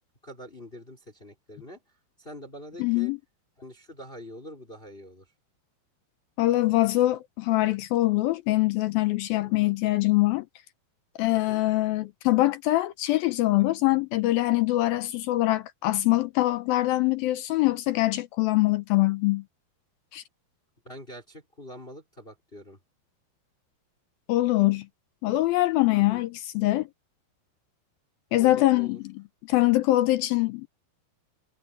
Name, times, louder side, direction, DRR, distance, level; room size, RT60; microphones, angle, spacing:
voice 1, 0.2-1.8 2.2-3.1 3.6-5.3 9.4-9.7 11.5-11.6 20.8-22.8 25.9-26.3 28.4-29.0, equal, 15° left, 4.6 m, -45 dB
voice 2, 2.8-3.2 6.4-10.5 11.2-19.4 20.1-20.2 24.3-24.9 25.2-26.9 28.3-29.1 29.5-30.7, left 17 dB, 80° left, 2.3 m, -23 dB
omnidirectional pair, 4.7 m